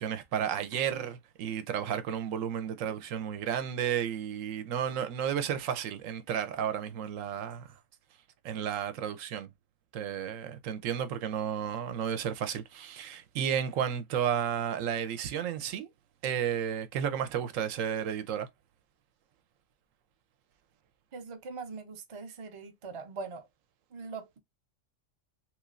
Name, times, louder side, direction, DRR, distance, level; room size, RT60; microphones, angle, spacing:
voice 1, 0.0-7.7 8.4-9.5 9.9-15.9 16.2-18.5, right 8 dB, 80° right, 1.0 m, -32 dB
voice 2, 21.1-23.5 23.9-24.4, right 4 dB, 40° right, 0.4 m, -42 dB
3.1 x 2.9 x 2.4 m
omnidirectional pair, 1.3 m